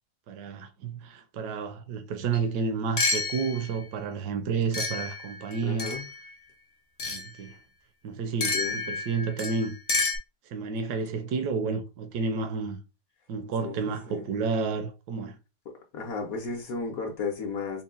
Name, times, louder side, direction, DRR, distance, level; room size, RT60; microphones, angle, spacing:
voice 1, 0.3-5.9 7.1-7.6 8.0-9.8 10.5-12.8 13.3-15.4, right 5 dB, 80° right, 1.2 m, -31 dB
sound 1, 2.3-2.4 3.0-3.8 4.7-6.3 7.0-7.3 8.4-10.2, left 3 dB, 45° left, 0.9 m, -30 dB
voice 2, 5.6-6.0 8.5-8.8 13.6-14.2 15.7-17.8, left 4 dB, 65° left, 1.1 m, -34 dB
4.0 x 2.2 x 3.7 m
omnidirectional pair, 1.8 m